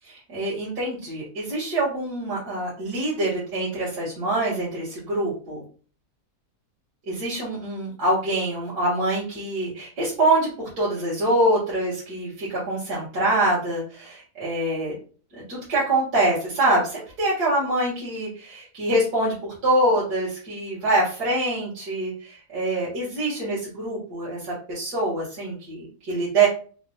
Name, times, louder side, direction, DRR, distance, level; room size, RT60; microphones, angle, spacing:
voice 1, 0.3-5.6 7.1-14.9 15.3-26.5, right 1 dB, 80° right, -7 dB, 1.8 m, -25 dB
4.2 x 2.1 x 2.7 m, 0.40 s
omnidirectional pair, 1.6 m